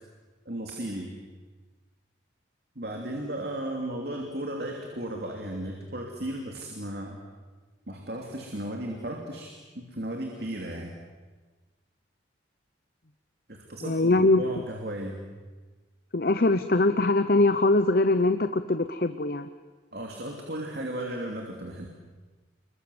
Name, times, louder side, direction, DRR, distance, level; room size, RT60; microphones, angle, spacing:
voice 1, 0.4-1.2 2.7-7.2 7.9-10.9 13.5-15.3 19.9-21.9, right 1 dB, 55° right, 1 dB, 2.9 m, -35 dB
voice 2, 13.8-14.6 16.1-19.5, left 2 dB, 50° left, 10 dB, 0.8 m, -22 dB
29.5 x 22.5 x 8.0 m, 1.3 s
head